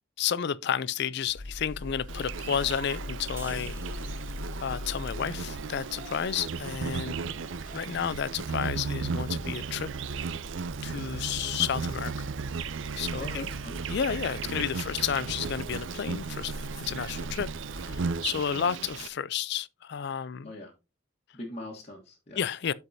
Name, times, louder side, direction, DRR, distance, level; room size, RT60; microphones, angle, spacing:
voice 1, 0.2-3.8 4.1-4.2 4.6-7.2 7.7-9.9 10.8-12.3 13.0-13.5 13.9-17.5 17.8-20.5 22.4-22.7, left 8 dB, 60° left, 0.4 m, -31 dB
sound 1, 1.3-18.1, left 1 dB, 45° right, 3.1 m, -42 dB
Insect, 2.1-19.1, right 5 dB, 70° right, 0.5 m, -35 dB
sound 2, 3.4-6.9 7.3-7.5, right 3 dB, 15° right, 1.0 m, -54 dB
voice 2, 13.2-13.8 20.4-20.7 21.3-22.4, left 1 dB, 35° left, 1.3 m, -41 dB
12.5 x 4.7 x 2.7 m
head